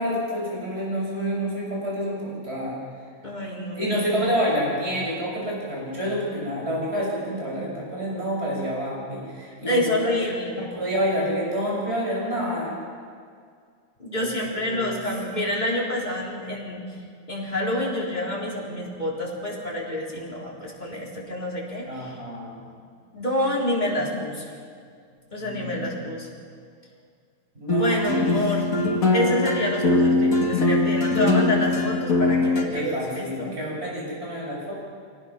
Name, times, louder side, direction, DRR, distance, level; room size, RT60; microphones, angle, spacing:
voice 1, 0.0-2.8 3.8-9.8 10.6-12.8 14.1-15.0 21.9-22.6 25.4-26.1 27.6-28.3 32.7-34.7, equal, 50° right, -4 dB, 7.0 m, -28 dB
voice 2, 3.2-4.0 9.7-10.7 14.0-16.8 17.3-22.1 23.1-24.5 25.3-26.3 27.7-28.7 29.1-33.5, left 1 dB, 35° left, -4 dB, 4.0 m, -28 dB
sound 1, 27.7-32.6, left 2 dB, 85° left, 2.2 m, -21 dB
25.5 x 18.0 x 5.9 m, 2.1 s
omnidirectional pair, 1.4 m